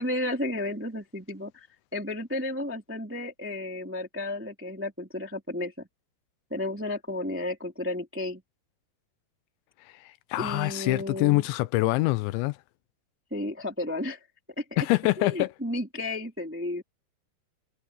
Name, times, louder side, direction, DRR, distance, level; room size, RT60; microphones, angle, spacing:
voice 1, 0.0-1.7 1.9-5.7 6.5-8.4 10.4-11.4 13.3-14.2 14.6-14.7 15.2-16.8, left 1 dB, 5° right, 1.3 m, -32 dB
voice 2, 10.0-12.6 14.8-15.5, left 19 dB, 85° left, 2.9 m, -25 dB
omnidirectional pair, 5.3 m